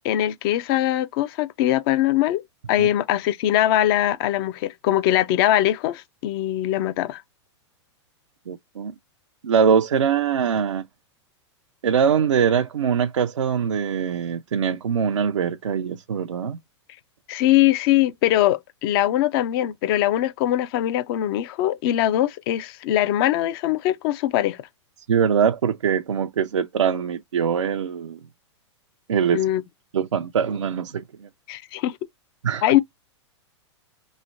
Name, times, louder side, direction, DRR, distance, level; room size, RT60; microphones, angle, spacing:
voice 1, 0.0-2.4 2.7-7.2 17.3-24.6 29.3-29.6 31.5-32.0 32.6-32.8, left 13 dB, 50° left, 0.6 m, -21 dB
voice 2, 8.5-8.9 9.4-10.8 11.8-16.6 25.1-28.2 29.1-29.4 29.9-31.3 32.4-32.7, right 7 dB, 90° right, 0.5 m, -22 dB
5.4 x 3.2 x 2.6 m
hypercardioid pair, 110°, 15 cm